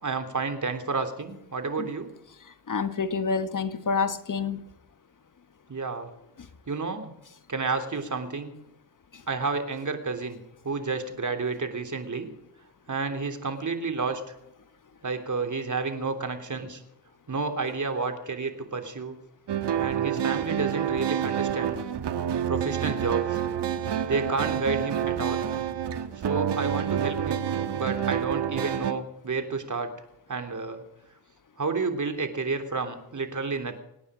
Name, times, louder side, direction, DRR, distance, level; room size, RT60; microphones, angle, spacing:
voice 1, 0.0-2.1 5.7-6.1 6.7-7.1 7.5-8.5 9.3-12.3 12.9-14.3 15.0-16.8 17.3-19.2 19.8-21.7 22.5-23.4 24.1-25.4 26.2-27.4 27.7-29.9 30.3-30.8 31.6-33.8, right 4 dB, 40° right, 6 dB, 3.2 m, -30 dB
voice 2, 2.7-4.6 9.1-9.2, left 5 dB, 45° left, 11 dB, 1.2 m, -28 dB
sound 1, 19.5-28.9, right 9 dB, 65° right, 1.5 m, -28 dB
26.0 x 9.6 x 5.0 m, 0.87 s
supercardioid pair, 55°, 45 cm